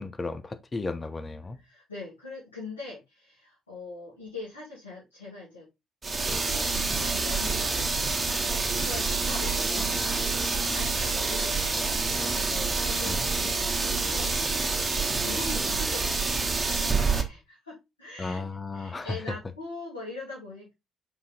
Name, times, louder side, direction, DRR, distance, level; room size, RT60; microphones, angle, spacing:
voice 1, 0.0-1.6 13.0-13.3 18.2-19.2, left 3 dB, 25° left, 1.0 m, -34 dB
voice 2, 1.5-5.7 6.3-7.9 8.7-16.5 16.7-18.4 18.7-20.7, left 3 dB, 80° left, 2.6 m, -42 dB
sound 1, 6.0-17.2, right 4 dB, 30° right, 1.4 m, -27 dB
5.4 x 4.6 x 3.8 m
figure-of-eight pair, 45°, 0 cm